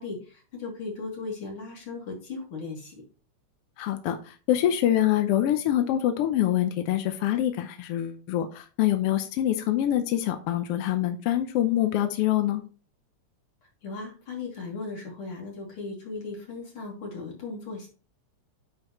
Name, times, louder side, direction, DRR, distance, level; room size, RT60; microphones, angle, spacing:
voice 1, 0.0-2.9 13.8-17.9, left 3 dB, 45° left, -1 dB, 3.3 m, -37 dB
voice 2, 3.8-12.6, left 12 dB, 75° left, 8 dB, 1.3 m, -25 dB
9.2 x 5.6 x 3.0 m, 0.36 s
omnidirectional pair, 3.4 m